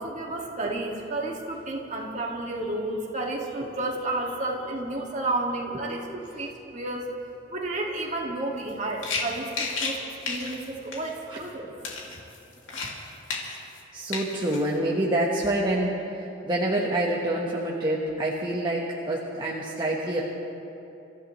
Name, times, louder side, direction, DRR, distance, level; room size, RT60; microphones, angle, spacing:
voice 1, 0.0-7.1 7.5-11.7, right 2 dB, 40° right, -1 dB, 2.1 m, -31 dB
sound 1, 8.7-8.8 9.0-10.0 10.2-10.7 10.9-11.1 11.4-11.5 11.8-13.0 13.3-13.8 14.1-14.6, left 4 dB, 90° left, 2.6 m, -32 dB
voice 2, 13.9-20.2, right 1 dB, 25° right, -4 dB, 1.4 m, -27 dB
29.0 x 14.5 x 3.3 m, 2.9 s
head